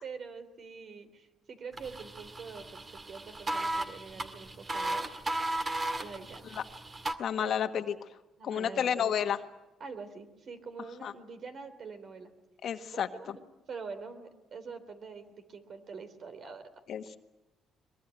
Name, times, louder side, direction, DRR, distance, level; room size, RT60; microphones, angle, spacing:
voice 1, 0.0-5.0 6.0-6.6 7.4-7.5 8.4-9.3 9.8-12.3 12.9-13.4 13.7-16.7 17.1-17.2, right 5 dB, 55° right, 10 dB, 3.4 m, -45 dB
sound 1, 1.7-7.1, right 1 dB, 30° right, 2.2 m, -36 dB
voice 2, 7.2-7.9 8.4-9.4 11.0-11.1 12.6-13.1 16.9-17.2, left 8 dB, 60° left, 8 dB, 1.5 m, -30 dB
22.5 x 22.0 x 9.1 m, 1.0 s
cardioid pair, 85°, 0 cm